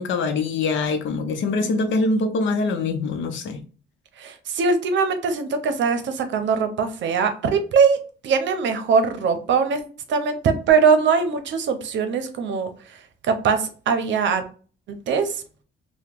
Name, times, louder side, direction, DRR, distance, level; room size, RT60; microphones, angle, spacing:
voice 1, 0.0-3.6, left 3 dB, 70° left, 0.7 m, -23 dB
voice 2, 1.4-2.0 4.2-8.0 8.2-9.8 10.1-12.7 13.2-14.4 14.9-15.4, right 5 dB, 70° right, 0.7 m, -21 dB
2.8 x 2.2 x 3.6 m
cardioid pair, 90°, 20 cm